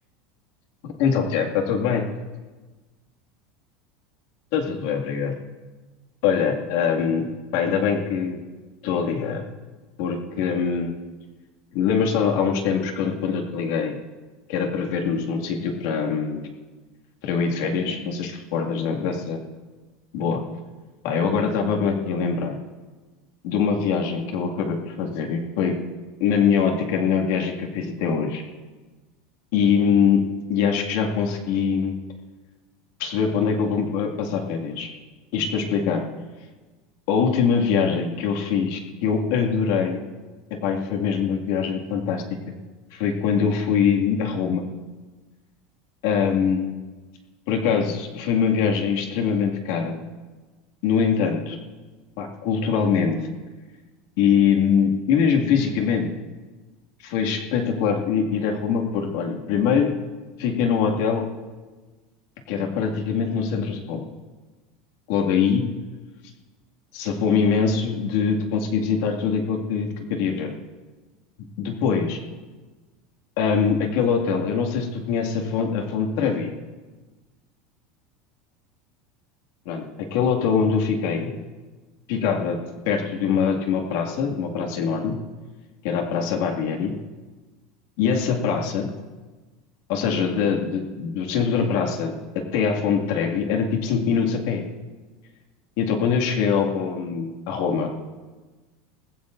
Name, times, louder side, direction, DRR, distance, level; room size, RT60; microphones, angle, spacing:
voice 1, 0.8-2.0 4.5-5.3 6.2-7.3 7.5-8.4 8.8-9.4 10.0-10.9 11.7-14.0 14.5-16.4 17.2-19.4 20.1-20.4 21.0-22.6 23.4-25.8 26.2-28.4 29.5-30.2 30.5-31.9 33.0-34.9 35.3-36.0 37.1-40.0 40.6-42.2 42.9-44.6 46.0-46.7 47.5-50.0 50.8-51.6 52.2-53.2 54.2-56.1 57.0-59.9 60.4-61.3 62.5-64.0 65.1-65.6 66.9-70.5 71.6-72.2 73.4-76.5 79.7-81.3 82.1-82.6 82.9-85.2 85.8-86.9 88.0-88.9 89.9-94.6 95.8-97.9, left 6 dB, 70° left, 1 dB, 2.1 m, -23 dB
20.0 x 16.0 x 2.6 m, 1.3 s
supercardioid pair, 150°, 0 cm